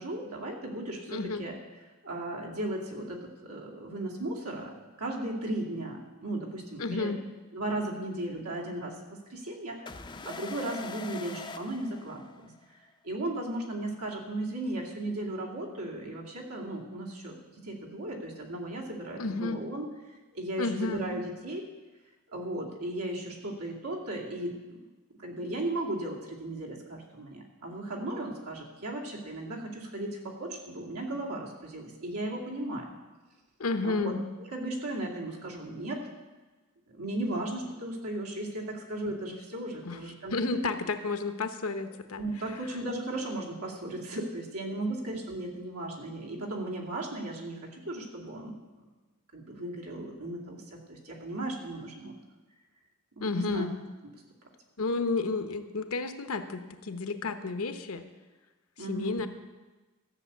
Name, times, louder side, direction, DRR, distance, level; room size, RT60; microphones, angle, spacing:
voice 1, 0.0-1.5 2.0-7.2 7.5-17.4 17.6-19.9 20.3-21.6 22.3-24.8 25.2-32.9 33.8-34.1 34.5-36.0 36.9-40.6 42.2-48.9 49.3-52.2 53.1-53.7 58.8-59.3, right 1 dB, 90° right, -1 dB, 2.5 m, -36 dB
voice 2, 1.1-1.5 6.8-7.2 19.2-19.6 20.6-21.1 33.6-34.2 39.8-40.0 40.3-42.2 44.9-45.0 53.2-53.7 54.8-58.0 58.8-59.3, left 3 dB, 70° left, 9 dB, 0.9 m, -31 dB
sound 1, 9.9-12.6, left 4 dB, 20° left, 0.5 m, -43 dB
13.5 x 6.8 x 8.2 m, 1.2 s
head